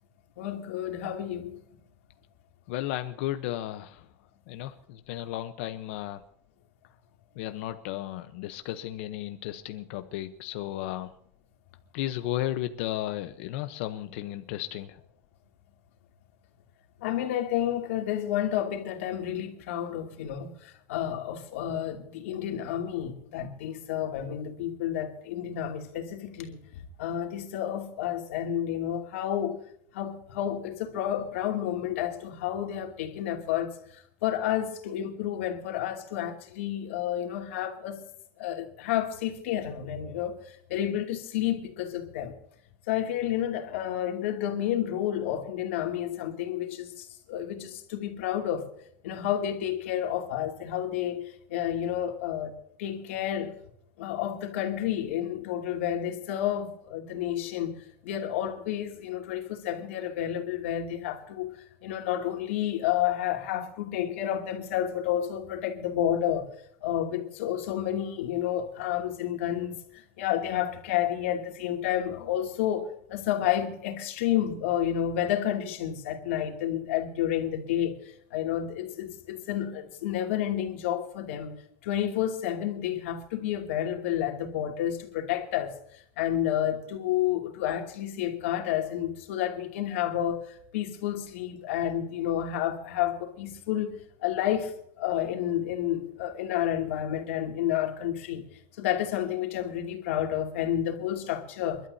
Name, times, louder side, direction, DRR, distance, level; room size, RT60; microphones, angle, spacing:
voice 1, 0.4-1.6 17.0-26.6 27.0-29.6 29.9-33.7 34.2-38.0 38.4-42.3 42.9-48.7 49.0-53.5 54.0-57.8 58.0-61.5 61.8-66.5 66.8-69.7 70.2-78.0 78.3-81.6 81.8-85.7 86.2-90.5 90.7-98.4 98.8-101.8, left 11 dB, 85° left, 2.7 m, -30 dB
voice 2, 2.7-4.0 4.5-6.2 7.4-11.1 11.9-14.9, left 13 dB, 60° left, 0.9 m, -34 dB
28.5 x 12.0 x 2.8 m
supercardioid pair, 165°, 7 cm